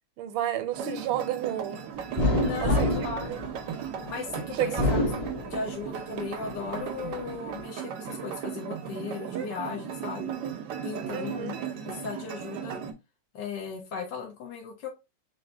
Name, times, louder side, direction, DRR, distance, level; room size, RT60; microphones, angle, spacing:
voice 1, 0.2-1.8 2.6-3.4 4.6-5.0 11.1-11.6, right 12 dB, 90° right, 1.5 m, -31 dB
sound 1, 0.7-12.9, right 8 dB, 70° right, 1.1 m, -36 dB
sound 2, 2.2-4.1 4.6-6.0 6.4-7.3, left 1 dB, 20° left, 1.1 m, -27 dB
voice 2, 2.4-3.3 4.1-10.3 10.8-11.5 11.8-12.8 13.3-14.9, left 5 dB, 60° left, 1.4 m, -37 dB
4.0 x 2.7 x 3.3 m
omnidirectional pair, 2.4 m